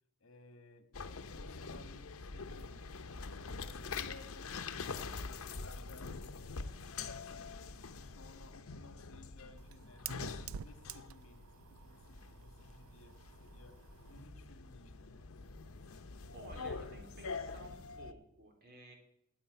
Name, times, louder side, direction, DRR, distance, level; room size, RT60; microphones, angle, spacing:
voice 1, 0.2-3.2 3.5-6.2 7.0-13.8 14.1-15.2, left 2 dB, 70° left, 1.7 m, -58 dB
sound 1, 0.9-18.1, left 4 dB, 90° left, 0.8 m, -45 dB
Fire, 8.2-14.3, right 9 dB, 75° right, 0.4 m, -51 dB
voice 2, 16.3-18.9, right 1 dB, 50° right, 3.1 m, -54 dB
10.0 x 8.6 x 9.1 m
head